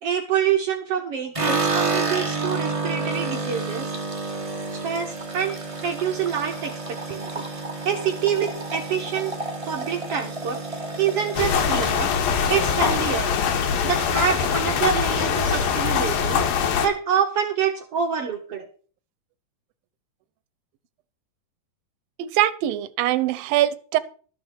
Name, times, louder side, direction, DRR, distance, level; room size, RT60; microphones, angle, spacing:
voice 1, 0.0-3.9 4.7-5.6 5.8-7.4 7.8-9.3 9.7-12.1 12.5-13.3 13.8-16.4 16.8-18.7, right 7 dB, 65° right, 4 dB, 1.6 m, -26 dB
sound 1, 1.3-13.6 13.9-14.6 14.8-14.9 15.2-15.9, right 3 dB, 25° right, 0.7 m, -30 dB
sound 2, 11.4-16.9, left 7 dB, 85° left, 3.1 m, -23 dB
voice 2, 22.2-24.0, right 13 dB, 90° right, 14 dB, 2.6 m, -22 dB
13.0 x 5.8 x 7.0 m, 0.43 s
omnidirectional pair, 4.0 m